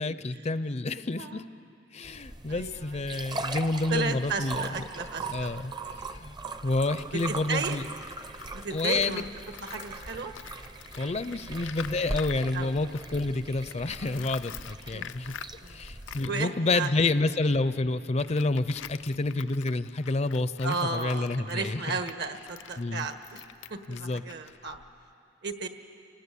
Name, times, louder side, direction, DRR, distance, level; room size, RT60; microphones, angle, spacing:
voice 1, 0.0-1.4 1.9-4.7 5.3-5.7 6.1-6.3 6.6-7.8 8.7-9.2 11.0-15.3 15.7-21.8 22.8-23.1 23.9-24.2, left 2 dB, 35° left, 14 dB, 0.5 m, -29 dB
sound 1, 2.0-16.3, right 3 dB, 25° right, 0.7 m, -40 dB
voice 2, 2.5-3.3 3.9-5.6 7.1-7.8 8.5-9.2 9.6-10.3 11.3-11.4 12.5-12.7 14.9-15.1 15.6-15.8 16.3-17.1 20.6-23.4 23.7-24.8 25.4-25.7, right 4 dB, 65° right, 7 dB, 1.5 m, -34 dB
Tools, 7.5-13.4 13.7-25.1, left 8 dB, 85° left, 0.5 m, -47 dB
29.0 x 19.5 x 8.4 m, 2.8 s
head